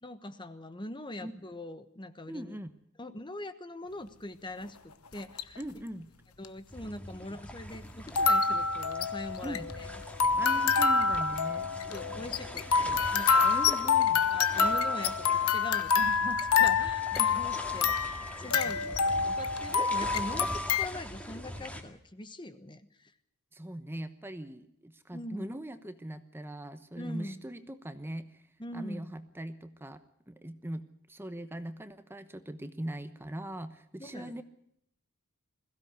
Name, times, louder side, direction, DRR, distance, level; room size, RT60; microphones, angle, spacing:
voice 1, 0.0-2.6 3.0-5.6 6.4-9.9 11.9-13.5 14.3-20.5 20.8-23.1 25.1-25.5 27.0-27.4 28.6-29.0 34.0-34.4, left 1 dB, 20° left, 11 dB, 1.2 m, -42 dB
voice 2, 2.3-2.7 5.6-6.1 9.4-9.7 10.4-11.7 13.4-14.2 16.7-16.9 18.6-18.8 23.5-28.5 28.7-34.4, right 1 dB, 10° right, 10 dB, 1.0 m, -41 dB
sound 1, 5.1-5.6 6.4-6.5 8.1-20.9, left 5 dB, 75° left, 1.1 m, -27 dB
sound 2, 6.7-21.8, equal, 5° left, 2.2 m, -43 dB
21.5 x 16.0 x 8.2 m, 0.73 s
head